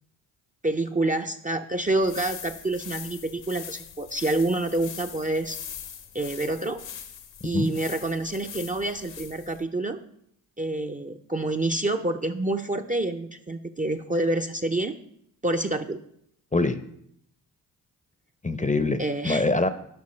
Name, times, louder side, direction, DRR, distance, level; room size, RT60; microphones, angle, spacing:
voice 1, 0.6-5.6 6.1-6.8 7.4-10.0 10.6-15.0 15.4-16.0 19.0-19.4, right 2 dB, 20° right, 8 dB, 0.6 m, -27 dB
sound 1, 1.9-9.6, left 8 dB, 65° left, 1.1 m, -42 dB
voice 2, 18.4-19.7, left 3 dB, 15° left, 11 dB, 0.7 m, -24 dB
10.0 x 5.2 x 3.3 m, 0.71 s
hypercardioid pair, 40°, 47 cm